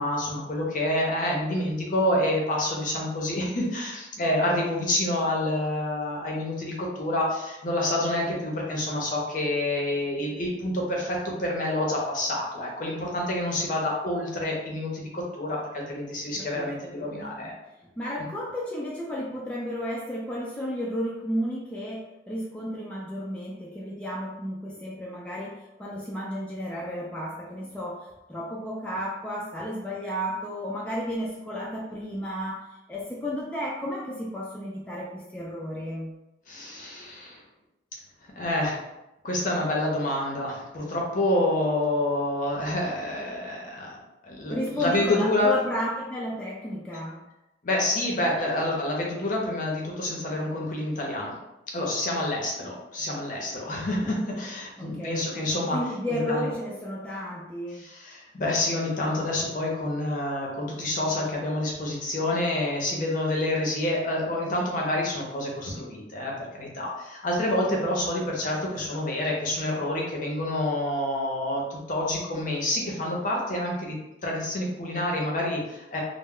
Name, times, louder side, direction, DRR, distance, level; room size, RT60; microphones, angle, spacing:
voice 1, 0.0-17.5 36.5-37.4 38.4-38.8 39.2-43.9 44.2-45.5 47.6-51.3 51.7-55.8 56.1-56.5 57.7-74.0 74.2-76.0, left 1 dB, 45° left, -2 dB, 0.6 m, -28 dB
voice 2, 16.4-17.5 18.0-28.0 28.3-32.6 32.9-36.1 44.5-47.2 54.8-55.2 55.7-57.8, equal, 5° left, -5 dB, 0.3 m, -33 dB
2.1 x 2.0 x 3.5 m, 0.95 s
head